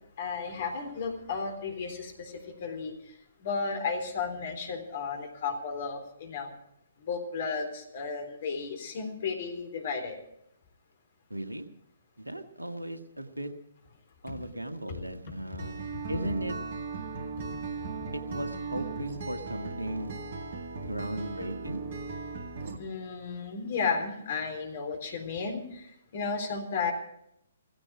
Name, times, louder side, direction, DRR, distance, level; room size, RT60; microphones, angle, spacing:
voice 1, 0.2-3.1 3.4-6.5 7.0-10.2 14.3-14.4 14.9-15.0 15.9-16.0 17.4-17.6 18.0-18.1 22.8-26.9, left 5 dB, 45° left, 5 dB, 3.8 m, -34 dB
voice 2, 11.3-11.6 12.2-13.5 14.2-15.8 16.1-16.5 18.1-20.1 20.8-21.8, right 1 dB, 80° right, 7 dB, 1.7 m, -36 dB
Acoustic guitar, 15.6-22.8, right 4 dB, 45° right, 2.0 m, -37 dB
17.0 x 16.0 x 4.9 m, 0.76 s
figure-of-eight pair, 125°, 0 cm